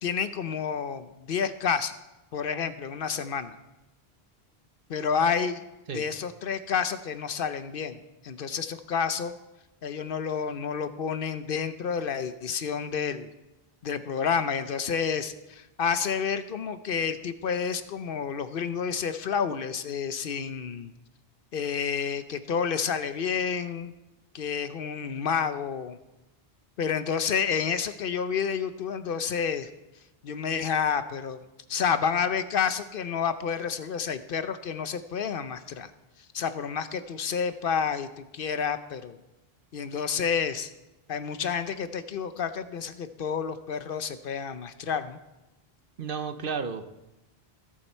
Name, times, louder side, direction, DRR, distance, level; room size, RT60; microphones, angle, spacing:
voice 1, 0.0-1.9 2.3-3.6 4.9-5.6 5.9-8.0 8.2-9.3 9.8-13.3 13.8-20.9 21.5-23.9 24.3-26.0 26.8-29.7 30.2-31.4 31.7-35.9 36.3-39.2 39.7-40.7 41.1-45.2, left 6 dB, 65° left, 11 dB, 0.8 m, -29 dB
voice 2, 46.0-46.8, right 5 dB, 60° right, 9 dB, 1.0 m, -32 dB
20.5 x 7.5 x 4.4 m, 0.98 s
omnidirectional pair, 1.0 m